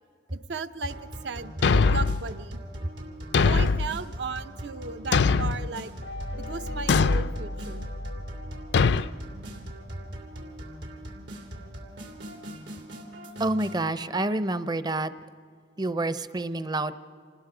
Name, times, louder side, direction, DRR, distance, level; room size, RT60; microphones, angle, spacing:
voice 1, 0.3-1.0 1.2-2.6 3.4-5.9 6.4-7.9 9.3-9.7 11.6-11.7, right 4 dB, 70° right, 11 dB, 0.7 m, -36 dB
sound 1, 0.9-13.8, equal, 85° right, 3.0 m, -41 dB
Thump thud, 1.6-2.2 3.3-3.9 5.1-5.7 6.9-7.3 8.7-9.1, left 4 dB, 70° left, 0.4 m, -21 dB
sound 2, 6.0-9.8, left 1 dB, 90° left, 1.0 m, -37 dB
voice 2, 13.4-15.1 15.8-16.9, right 2 dB, 25° right, 13 dB, 0.6 m, -28 dB
27.5 x 19.5 x 5.0 m, 2.1 s
head